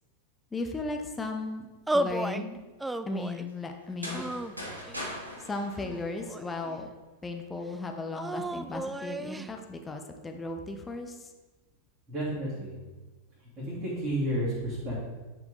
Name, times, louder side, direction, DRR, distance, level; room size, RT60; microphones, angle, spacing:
voice 1, 0.5-1.7 1.9-2.6 3.1-4.2 5.5-6.9 7.2-11.3, left 2 dB, 15° left, 4 dB, 0.9 m, -36 dB
sound 1, 1.9-2.4 2.8-3.5 4.1-5.0 5.8-6.8 8.1-9.5, right 1 dB, 5° right, 0.3 m, -33 dB
sound 2, 3.8-6.7, equal, 85° right, 1.7 m, -40 dB
voice 2, 12.1-12.7 13.4-15.0, equal, 25° right, -11 dB, 2.8 m, -31 dB
9.6 x 4.9 x 4.0 m, 1.2 s
figure-of-eight pair, 90°, 0 cm